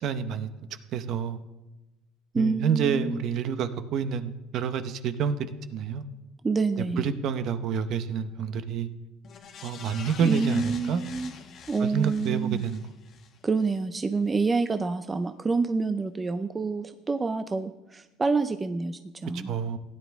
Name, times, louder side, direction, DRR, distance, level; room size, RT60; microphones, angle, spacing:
voice 1, 0.0-0.5 0.9-1.4 2.4-6.0 7.0-8.9 9.6-11.0 11.8-12.9 19.3-19.8, right 7 dB, 50° right, 11 dB, 0.8 m, -28 dB
voice 2, 2.3-3.2 6.4-7.1 10.2-11.3 11.7-12.6 13.4-19.5, right 4 dB, 15° right, 9 dB, 0.5 m, -27 dB
sound 1, 9.2-13.8 14.2-14.3, left 6 dB, 40° left, 1.3 m, -46 dB
16.0 x 10.0 x 3.5 m, 1.0 s
cardioid pair, 140°, 0 cm